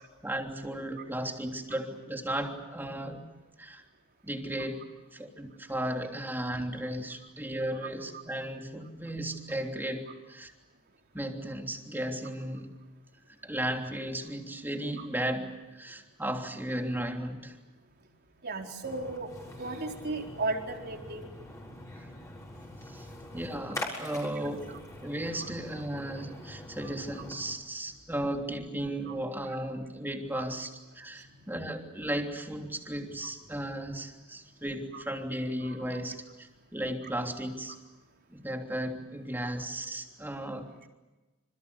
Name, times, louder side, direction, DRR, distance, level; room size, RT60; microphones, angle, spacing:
voice 1, 0.2-3.2 3.6-3.8 4.2-4.8 5.1-10.5 11.1-12.7 13.4-17.5 22.0-22.1 22.9-23.1 23.3-37.8 38.3-40.9, right 1 dB, 10° right, 3 dB, 3.2 m, -35 dB
voice 2, 18.4-19.3 19.6-21.3 25.4-25.5 26.8-26.9 29.1-29.2 29.4-29.5 30.3-30.4 31.2-31.5 34.9-35.0 35.6-36.0, right 3 dB, 50° right, 2 dB, 4.2 m, -36 dB
Splash splatter, 18.8-27.5, left 1 dB, 15° left, 6.7 m, -43 dB
27.5 x 27.5 x 7.0 m, 1.2 s
head